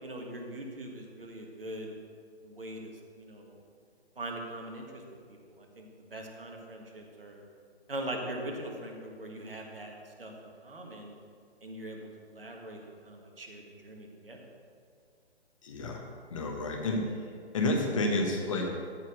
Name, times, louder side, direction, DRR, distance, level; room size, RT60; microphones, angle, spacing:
voice 1, 0.0-2.0 2.4-3.6 4.1-5.0 5.3-7.4 7.9-10.3 10.6-11.1 11.6-14.4, right 1 dB, 55° right, 1 dB, 1.8 m, -42 dB
voice 2, 15.6-16.0 16.3-17.0 17.5-18.7, left 2 dB, 30° left, 1 dB, 1.3 m, -30 dB
13.0 x 4.5 x 6.4 m, 2.2 s
figure-of-eight pair, 145°, 33 cm